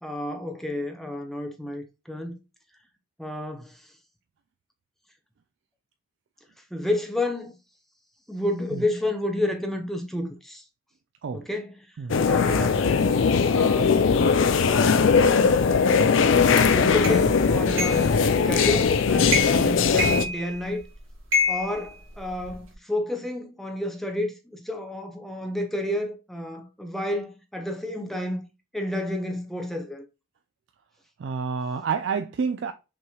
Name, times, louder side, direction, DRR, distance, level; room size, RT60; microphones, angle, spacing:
voice 1, 0.0-2.4 3.2-3.8 6.7-7.5 8.3-10.6 11.3-11.9 12.2-12.9 13.5-14.0 16.7-18.1 18.4-20.8 21.5-28.4 28.7-30.1, left 1 dB, ahead, 0.6 m, -30 dB
sound 1, 12.1-20.2, left 5 dB, 70° left, 0.4 m, -20 dB
sound 2, 17.0-17.2 17.8-18.1 18.6-18.9 19.3-19.7 20.0-20.8 21.3-22.6, left 3 dB, 90° right, 1.9 m, -27 dB
voice 2, 31.2-32.7, right 5 dB, 65° right, 0.3 m, -28 dB
5.9 x 3.0 x 2.3 m
head